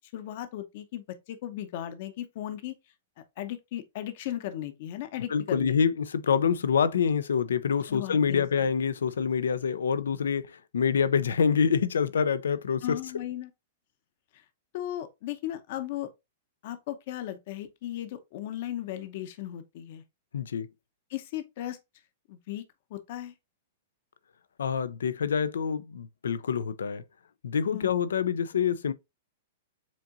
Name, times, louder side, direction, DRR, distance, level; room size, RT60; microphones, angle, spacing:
voice 1, 0.1-2.8 3.2-5.8 7.9-8.4 12.8-13.5 14.7-16.1 16.6-20.0 21.1-21.8 22.3-22.6 22.9-23.3 27.7-28.0, left 12 dB, 55° left, 0.8 m, -36 dB
voice 2, 5.3-13.0 20.3-20.7 24.6-27.0 27.4-28.9, left 6 dB, 90° left, 0.5 m, -26 dB
7.3 x 2.7 x 2.5 m
hypercardioid pair, 135°, 0 cm